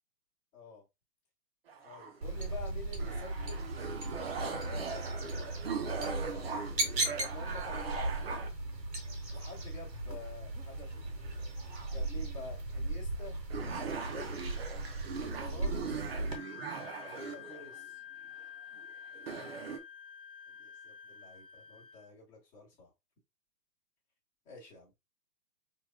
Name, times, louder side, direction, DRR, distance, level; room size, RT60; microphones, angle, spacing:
voice 1, 0.5-0.8 1.8-3.7 4.6-6.8 7.1-8.5 9.3-11.4 11.9-14.5 15.2-16.1 17.0-18.0 20.5-22.9 24.4-24.9, left 3 dB, 15° left, -5 dB, 1.5 m, -50 dB
sound 1, 1.7-2.5 3.0-8.5 9.3-10.0 10.3-10.4 10.9-12.1 12.7-12.8 13.2-13.3 13.5-17.8 18.7-18.9 19.1-19.8, right 5 dB, 40° right, 0.6 m, -41 dB
sound 2, 2.2-16.4, right 2 dB, 75° right, 1.4 m, -37 dB
Wind instrument woodwind instrument, 16.3-22.1, left 9 dB, 35° left, 0.4 m, -49 dB
4.4 x 3.0 x 2.2 m, 0.22 s
hypercardioid pair, 140°, 50 cm